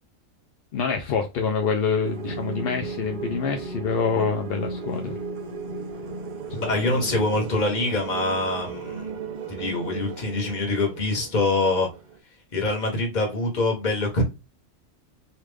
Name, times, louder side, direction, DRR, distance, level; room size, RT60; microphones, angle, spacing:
voice 1, 0.7-5.2 6.5-7.1, left 5 dB, 65° left, 0.6 m, -26 dB
sound 1, 2.0-12.2, right 4 dB, 50° right, 0.6 m, -35 dB
voice 2, 6.6-9.1 9.5-11.9 12.5-14.2, left 2 dB, 35° left, 1.0 m, -25 dB
3.2 x 2.4 x 3.3 m
omnidirectional pair, 1.5 m